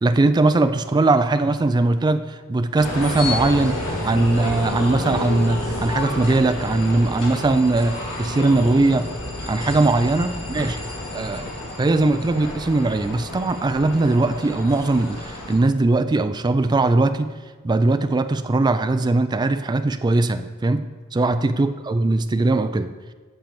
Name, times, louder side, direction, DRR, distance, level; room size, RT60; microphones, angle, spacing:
voice 1, 0.0-9.1 9.4-10.8 11.1-11.5 11.8-17.3 17.6-20.9 21.1-22.9, right 2 dB, 20° right, 10 dB, 0.3 m, -20 dB
sound 1, 2.8-15.6, left 1 dB, 65° left, 2.5 m, -30 dB
7.6 x 4.6 x 7.1 m, 1.4 s
head